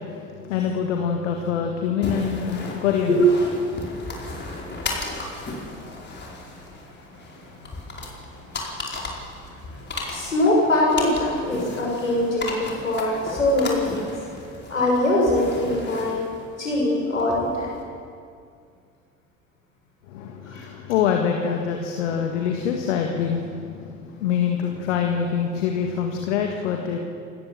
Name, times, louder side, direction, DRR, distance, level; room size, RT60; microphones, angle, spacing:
voice 1, 0.0-3.3 3.6-4.0 20.1-27.0, left 7 dB, 70° left, 3 dB, 1.9 m, -25 dB
sound 1, 2.0-17.8, left 2 dB, 25° left, 4.8 m, -35 dB
voice 2, 4.3-4.7 5.2-5.4 5.6-5.9 6.3-6.4 7.7-7.8 8.9-9.0 9.7-9.8 10.1-14.1 14.7-16.2 16.6-17.7 20.5-20.6, left 1 dB, 85° left, -3 dB, 6.0 m, -23 dB
27.5 x 14.0 x 7.4 m, 2.3 s
figure-of-eight pair, 60°, 39 cm